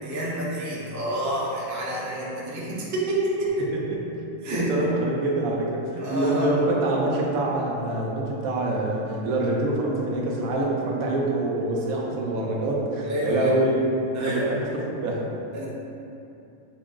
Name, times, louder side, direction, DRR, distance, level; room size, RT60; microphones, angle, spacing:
voice 1, 0.0-3.5 4.4-4.7 6.0-6.5 13.0-13.5 14.1-14.5 15.5-15.7, right 1 dB, 25° right, -5 dB, 0.3 m, -28 dB
voice 2, 4.5-13.8 14.2-15.3, right 2 dB, 90° right, -2 dB, 1.1 m, -25 dB
5.9 x 2.1 x 3.6 m, 2.6 s
omnidirectional pair, 1.4 m